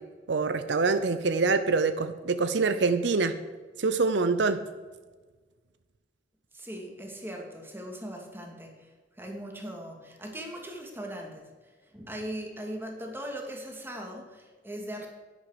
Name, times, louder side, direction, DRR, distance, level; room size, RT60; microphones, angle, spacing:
voice 1, 0.3-3.3 3.8-4.6, right 4 dB, 75° right, 11 dB, 0.6 m, -25 dB
voice 2, 6.5-8.9 9.2-11.5 11.9-15.1, right 1 dB, 15° right, 2 dB, 2.1 m, -39 dB
10.5 x 9.8 x 5.0 m, 1.4 s
head